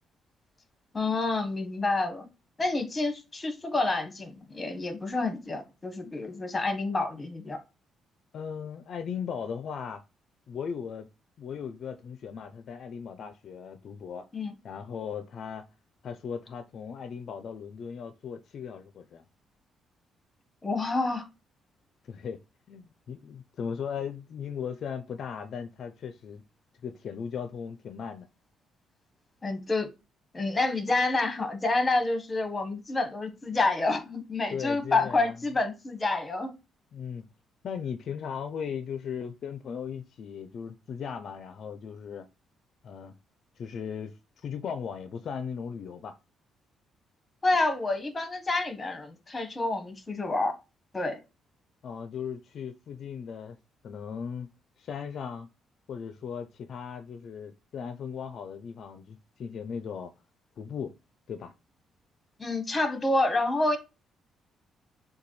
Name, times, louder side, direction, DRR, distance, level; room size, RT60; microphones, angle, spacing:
voice 1, 0.9-2.3 2.6-7.6 14.3-14.5 20.6-21.2 29.4-29.9 30.3-36.5 47.4-50.5 50.9-51.2 62.4-63.8, left 2 dB, 25° left, 1.0 m, -28 dB
voice 2, 8.3-10.0 10.5-11.1 11.4-14.3 14.6-15.6 16.0-19.2 22.0-22.4 22.7-26.4 26.8-28.3 34.5-35.4 36.9-37.3 37.6-42.3 42.8-43.2 43.6-46.2 51.8-53.6 53.8-54.5 54.8-55.5 55.9-60.1 60.6-60.9 61.3-61.5, left 7 dB, 60° left, 0.4 m, -37 dB
6.7 x 2.3 x 3.1 m
cardioid pair, 90°, 0 cm